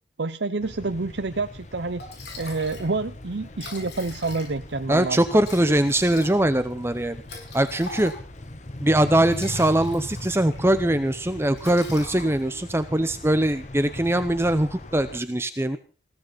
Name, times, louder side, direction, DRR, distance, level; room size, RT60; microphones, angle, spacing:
voice 1, 0.2-2.0 2.4-5.4, right 3 dB, 75° right, 10 dB, 0.8 m, -28 dB
sound 1, 0.6-15.2, left 1 dB, 40° left, 1.5 m, -40 dB
Liquid, 1.6-1.7 2.0-2.9 3.2-3.3 3.5-4.7 5.4-8.4 9.1-10.6 10.9-11.2 11.6-12.6, left 3 dB, 70° left, 7.5 m, -41 dB
voice 2, 4.9-7.2 7.5-8.1 8.8-15.8, right 1 dB, 15° right, 11 dB, 0.8 m, -22 dB
20.5 x 17.0 x 4.1 m, 0.38 s
head